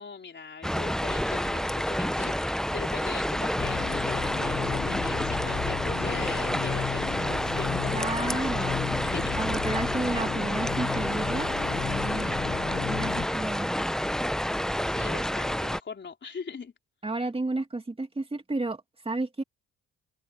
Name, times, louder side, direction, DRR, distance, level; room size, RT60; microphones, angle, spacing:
voice 1, 0.0-9.4 14.9-16.7, left 5 dB, 40° left, 4.4 m, -41 dB
sound 1, 0.6-15.8, equal, ahead, 0.7 m, -29 dB
sound 2, 3.6-13.3, left 10 dB, 55° left, 1.0 m, -35 dB
voice 2, 7.9-8.8 9.4-11.5 11.8-12.3 12.8-14.1 17.0-19.4, right 2 dB, 20° right, 2.6 m, -32 dB
open air
cardioid pair, 90°, 30 cm